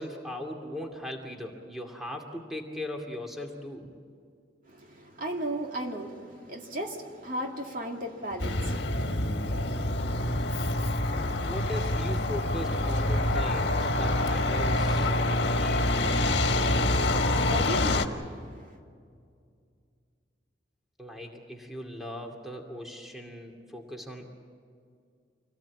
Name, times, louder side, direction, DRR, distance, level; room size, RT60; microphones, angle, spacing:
voice 1, 0.0-3.9 11.4-15.1 15.5-16.4 21.0-24.3, left 1 dB, ahead, 1 dB, 2.4 m, -39 dB
voice 2, 4.7-9.1 16.7-18.8, equal, 45° right, 1 dB, 2.5 m, -36 dB
Truck, 8.4-18.1, left 1 dB, 60° left, 1.6 m, -26 dB
26.5 x 18.0 x 8.6 m, 2.2 s
head